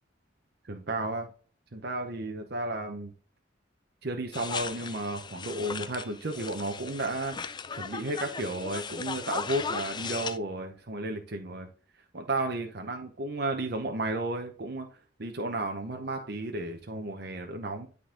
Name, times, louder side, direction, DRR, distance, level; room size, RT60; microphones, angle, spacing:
voice 1, 0.6-1.3 1.7-3.1 4.0-7.4 7.7-11.7 12.1-14.9 15.2-17.9, right 2 dB, 55° right, 4 dB, 0.9 m, -33 dB
sound 1, 4.3-10.4, left 5 dB, 25° left, 0.4 m, -37 dB
11.5 x 4.0 x 3.8 m, 0.40 s
head